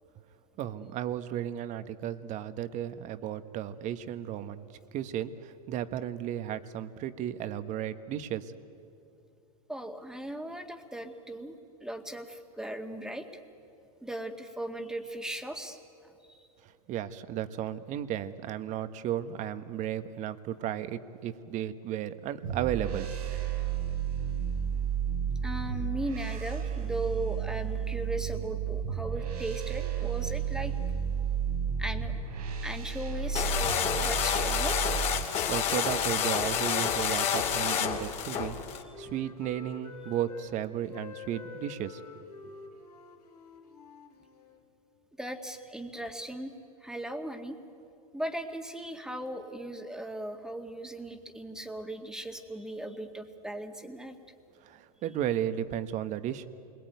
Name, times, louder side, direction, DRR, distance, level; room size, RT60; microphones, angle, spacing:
voice 1, 0.6-4.6 4.9-8.5 16.6-23.1 35.5-38.6 39.0-42.0 42.4-42.5 54.6-56.5, right 10 dB, 40° right, 11 dB, 1.3 m, -34 dB
voice 2, 9.7-13.3 14.0-16.5 25.4-30.7 31.8-32.1 32.6-34.8 45.2-46.5 46.8-47.6 48.1-54.2, right 1 dB, 5° right, 5 dB, 2.0 m, -38 dB
sound 1, 22.4-35.2, right 8 dB, 75° right, 4.4 m, -32 dB
sound 2, 33.3-38.8, left 8 dB, 35° left, 2.7 m, -29 dB
Wind instrument woodwind instrument, 37.2-40.5 40.8-44.6, left 5 dB, 90° left, 3.6 m, -48 dB
28.5 x 22.0 x 9.4 m, 2.7 s
hypercardioid pair, 115°, 20 cm